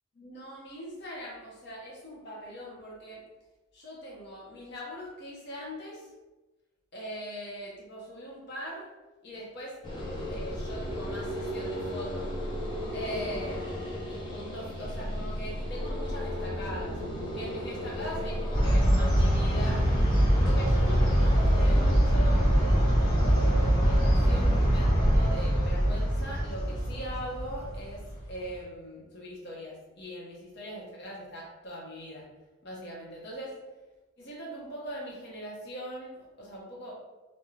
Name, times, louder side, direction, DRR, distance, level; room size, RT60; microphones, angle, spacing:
voice 1, 0.2-3.2 3.7-6.1 6.9-8.9 9.2-9.8 10.3-12.3 12.9-17.0 17.3-19.8 20.3-23.0 23.2-28.0 28.3-32.3 32.6-33.6 34.2-36.9, equal, 50° left, -4 dB, 0.9 m, -41 dB
sound 1, 9.8-24.7, equal, 25° left, 0.5 m, -35 dB
sound 2, 18.5-28.3, equal, 70° left, 1.3 m, -23 dB
2.7 x 2.3 x 3.2 m, 1.1 s
head